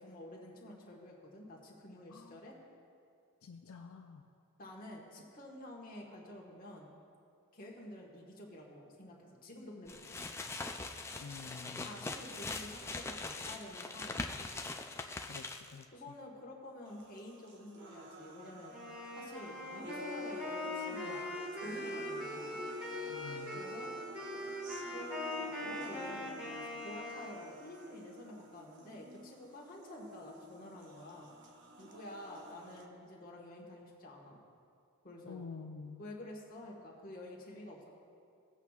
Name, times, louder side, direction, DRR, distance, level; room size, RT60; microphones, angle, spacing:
voice 1, 0.0-2.5 4.6-6.9 7.5-10.2 11.7-14.4 15.9-18.7 19.1-22.6 23.5-23.9 24.9-31.3 31.8-34.4 35.0-35.4 36.0-37.8, left 1 dB, 40° left, -2 dB, 1.5 m, -49 dB
voice 2, 2.1-2.4 3.4-4.2 11.2-12.1 15.3-15.9 23.1-23.6 35.2-36.0, left 5 dB, 75° left, 3 dB, 0.5 m, -49 dB
sound 1, 9.9-15.8, left 3 dB, 10° left, 0.3 m, -42 dB
sound 2, 16.8-32.8, equal, 55° right, 0.9 m, -49 dB
Wind instrument woodwind instrument, 18.7-27.5, left 1 dB, 5° right, 1.9 m, -42 dB
17.5 x 8.1 x 2.4 m, 2.4 s
head